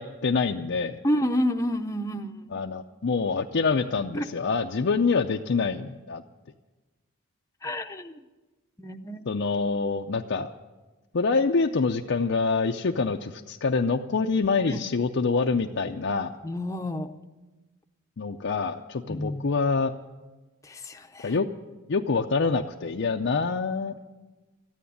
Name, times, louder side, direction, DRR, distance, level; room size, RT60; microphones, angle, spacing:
voice 1, 0.0-1.0 2.5-6.2 9.3-10.5 11.1-16.4 18.2-19.9 21.2-21.5 21.9-23.9, left 4 dB, 55° left, 3 dB, 0.5 m, -26 dB
voice 2, 1.0-2.5 4.1-4.3 7.6-8.1 8.8-9.3 14.7-14.8 16.4-17.1 19.1-19.4 20.6-21.4, equal, 15° left, 5 dB, 0.7 m, -29 dB
14.0 x 9.4 x 9.9 m, 1.2 s
head